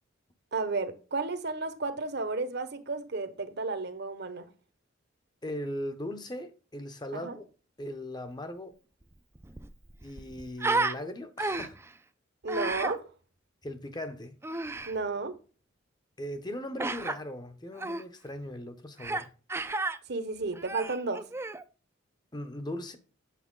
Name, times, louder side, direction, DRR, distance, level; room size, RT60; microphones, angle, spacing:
voice 1, 0.5-4.5 7.1-7.4 12.4-13.0 14.9-15.3 20.1-21.2, right 3 dB, 60° right, 1.1 m, -32 dB
voice 2, 5.4-7.5 7.8-8.7 10.0-11.8 13.6-14.4 16.2-19.3 22.3-23.0, left 1 dB, 20° left, 0.8 m, -38 dB
Human voice, 9.0-9.1 9.4-11.0 11.4-11.9 12.5-13.0 14.4-14.9 16.8-17.2 17.8-18.0 19.0-19.2 19.5-20.0 20.5-21.6, right 3 dB, 15° right, 0.5 m, -32 dB
8.5 x 6.7 x 3.7 m
head